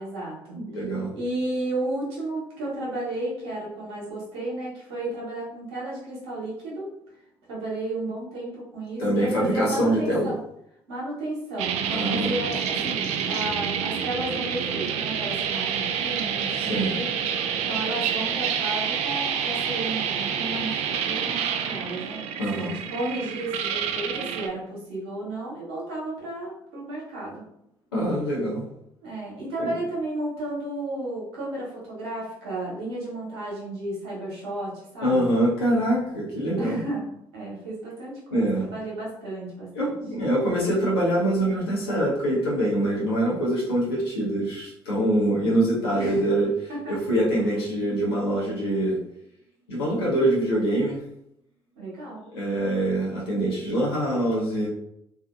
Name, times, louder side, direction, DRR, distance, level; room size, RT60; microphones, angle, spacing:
voice 1, 0.0-0.6 1.1-6.9 7.5-10.4 10.9-22.2 22.5-27.4 29.0-35.3 36.6-37.0 37.3-39.9 46.0-46.2 46.7-47.0 51.8-52.3, right 1 dB, 75° right, -5 dB, 1.0 m, -33 dB
voice 2, 0.5-1.1 9.0-10.3 11.9-12.3 16.5-16.9 22.4-22.7 27.9-28.7 29.6-29.7 35.0-36.8 38.3-38.7 39.7-49.0 49.7-51.0 52.3-54.7, right 1 dB, 80° left, -6 dB, 0.9 m, -24 dB
sound 1, 11.6-24.5, right 7 dB, 60° right, 0.4 m, -28 dB
2.6 x 2.4 x 2.4 m, 0.79 s
figure-of-eight pair, 50°, 13 cm